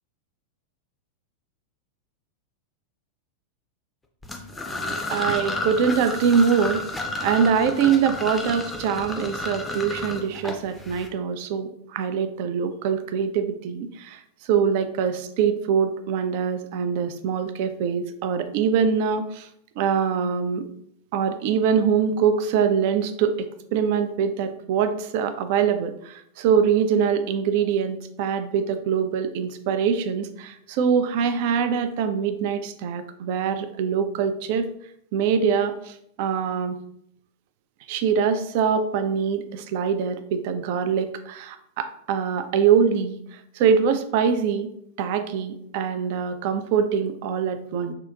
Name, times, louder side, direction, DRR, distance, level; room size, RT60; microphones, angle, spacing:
sound 1, 4.2-11.1, left 2 dB, 10° left, 0.5 m, -31 dB
voice 1, 5.1-6.8 7.2-14.2 14.5-19.5 19.8-20.7 21.1-34.7 35.1-36.8 37.9-44.7 45.0-47.9, right 7 dB, 50° right, 9 dB, 0.3 m, -23 dB
3.6 x 2.4 x 2.3 m, 0.72 s
figure-of-eight pair, 90°, 0 cm